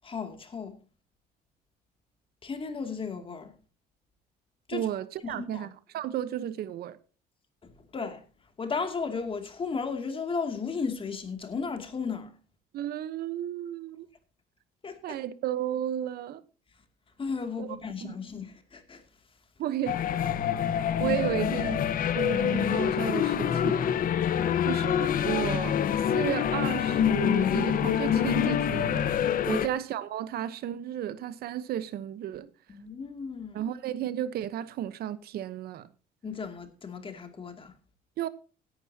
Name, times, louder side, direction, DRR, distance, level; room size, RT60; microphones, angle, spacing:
voice 1, 0.0-0.8 2.4-3.5 4.7-4.9 5.2-5.7 7.9-8.2 8.6-12.3 14.8-15.2 17.2-19.0 24.4-24.7 29.4-29.6 32.7-33.6 36.2-37.7, left 5 dB, 30° left, 2.5 m, -35 dB
voice 2, 4.7-7.0 12.7-14.1 15.0-16.4 17.6-18.1 19.6-20.0 20.7-21.8 22.1-23.9 24.7-29.0 29.5-32.5 33.5-35.9 38.2-38.3, right 11 dB, 65° right, 1.0 m, -33 dB
sound 1, 19.9-29.7, left 9 dB, 55° left, 1.0 m, -26 dB
17.0 x 11.0 x 2.8 m
cardioid pair, 110°, 17 cm